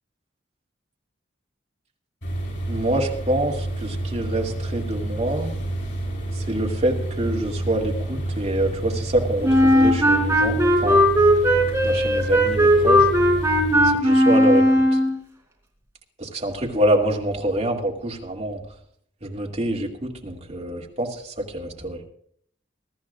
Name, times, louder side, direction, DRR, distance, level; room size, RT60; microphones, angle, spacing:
sound 1, 2.2-13.9, right 1 dB, 75° left, 7.1 m, -29 dB
voice 1, 2.7-5.5 6.5-11.0 11.8-13.1 13.8-14.6 14.9-15.0 16.2-18.6 19.2-22.0, right 1 dB, 35° right, -1 dB, 2.4 m, -26 dB
Wind instrument woodwind instrument, 9.4-15.2, equal, 15° right, 3.7 m, -17 dB
23.0 x 13.0 x 2.5 m, 0.62 s
head